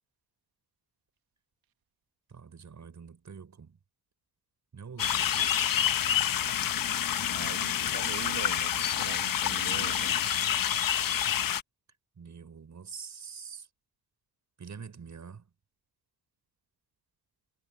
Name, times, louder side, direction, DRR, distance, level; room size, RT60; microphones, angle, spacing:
voice 1, 2.3-3.8 4.7-5.6 7.1-7.6 12.2-13.7 14.6-15.4, right 6 dB, 55° right, 6.7 m, -46 dB
sound 1, 5.0-11.6, left 10 dB, 70° left, 1.6 m, -28 dB
voice 2, 7.4-10.3, right 12 dB, 85° right, 2.3 m, -43 dB
supercardioid pair, 55°, 35 cm